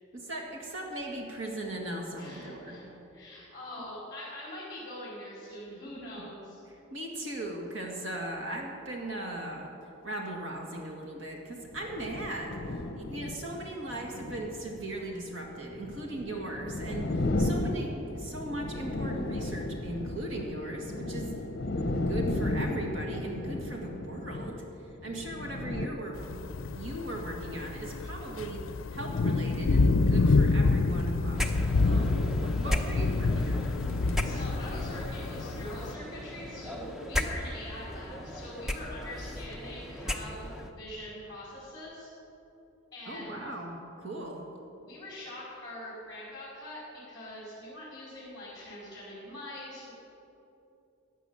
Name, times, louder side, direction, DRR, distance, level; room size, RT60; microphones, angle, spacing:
voice 1, 0.1-2.8 6.9-9.7 10.0-12.6 12.9-21.4 21.9-24.6 25.0-28.6 28.9-33.7 43.1-43.7 44.0-44.4, right 1 dB, 60° right, 1 dB, 2.0 m, -38 dB
voice 2, 2.2-6.6 34.2-42.1 42.9-43.4 44.8-49.9, left 1 dB, 20° left, -7 dB, 4.5 m, -43 dB
sound 1, 11.6-25.9, left 1 dB, 50° left, 0.9 m, -34 dB
sound 2, 26.1-35.9, left 3 dB, 65° left, 0.5 m, -27 dB
sound 3, 31.3-40.7, left 1 dB, ahead, 0.8 m, -36 dB
16.0 x 10.0 x 7.1 m, 2.8 s
head